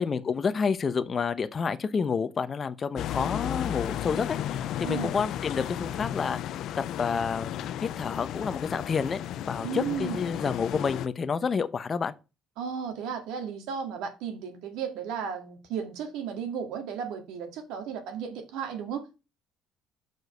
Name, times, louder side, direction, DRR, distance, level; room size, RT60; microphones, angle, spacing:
voice 1, 0.0-6.6 7.0-7.5 7.8-9.2 9.5-12.1, left 5 dB, 30° left, 0.7 m, -29 dB
sound 1, 3.0-11.1, left 11 dB, 60° left, 0.5 m, -34 dB
voice 2, 9.6-10.2 12.6-19.0, right 7 dB, 85° right, 2.1 m, -34 dB
6.1 x 5.2 x 6.7 m
cardioid pair, 145°, 0 cm